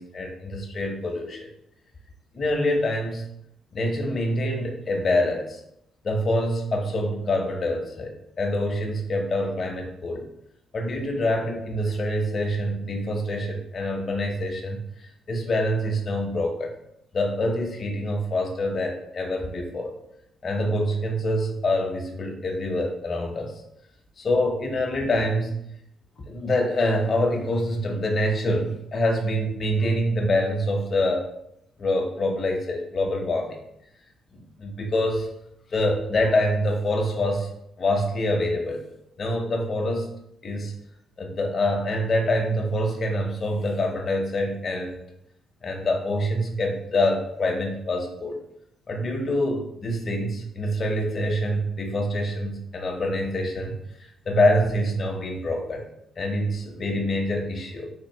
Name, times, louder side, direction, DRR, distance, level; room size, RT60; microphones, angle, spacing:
voice 1, 0.0-1.5 2.3-3.3 3.7-5.6 6.0-10.2 10.7-14.9 15.3-16.7 17.1-19.9 20.4-23.5 24.2-25.6 26.3-31.3 31.8-33.6 34.3-35.3 35.7-37.5 37.8-38.8 39.2-40.1 40.4-40.7 41.2-45.0 45.6-48.4 48.9-53.8 54.3-55.9 56.2-57.9, left 1 dB, 45° left, 2 dB, 0.7 m, -25 dB
3.6 x 2.8 x 3.0 m, 0.77 s
cardioid pair, 90°, 0 cm